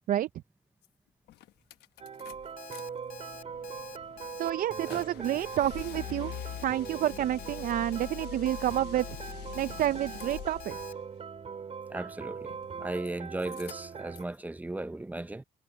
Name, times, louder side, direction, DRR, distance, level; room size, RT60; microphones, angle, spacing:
sound 1, 0.8-0.9 1.3-2.8 3.2-10.9 12.4-13.1 13.4-14.4, left 14 dB, 75° left, 1.2 m, -45 dB
sound 2, 2.0-14.2, right 6 dB, 35° right, 5.3 m, -41 dB
Alarm, 2.6-10.9, left 9 dB, 50° left, 2.9 m, -48 dB
voice 1, 4.4-6.3 6.6-9.1 9.6-10.8, right 12 dB, 55° right, 0.5 m, -29 dB
voice 2, 11.9-12.5 12.8-15.4, right 2 dB, 10° right, 0.8 m, -36 dB
cardioid pair, 110°, 17 cm